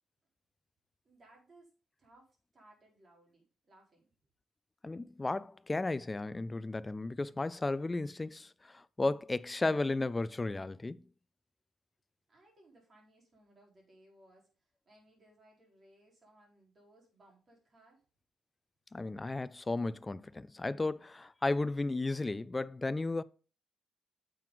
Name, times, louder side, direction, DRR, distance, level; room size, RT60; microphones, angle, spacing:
voice 1, 1.0-1.7 2.0-4.0 12.3-18.0, right 1 dB, 30° right, 4.2 m, -63 dB
voice 2, 4.8-11.0 18.9-23.2, left 2 dB, 15° left, 0.4 m, -34 dB
9.2 x 7.5 x 3.9 m
cardioid pair, 165°, 0 cm